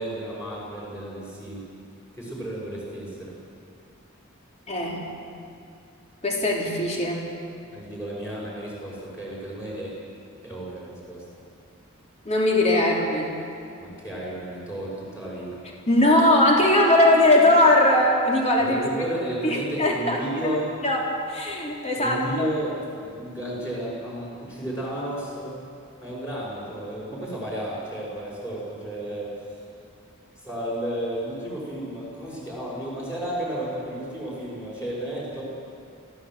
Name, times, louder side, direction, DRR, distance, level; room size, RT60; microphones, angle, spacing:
voice 1, 0.0-1.7 2.1-3.3 7.7-10.0 10.4-11.3 13.8-15.6 18.6-20.7 22.0-25.6 26.0-29.3 30.4-35.4, right 1 dB, 15° left, -7 dB, 5.7 m, -33 dB
voice 2, 4.7-5.0 6.2-7.2 12.3-13.3 15.9-18.8 19.4-20.2 20.5-21.0 21.3-22.5, left 1 dB, 30° left, -2 dB, 3.8 m, -20 dB
25.5 x 15.5 x 7.7 m, 2.5 s
head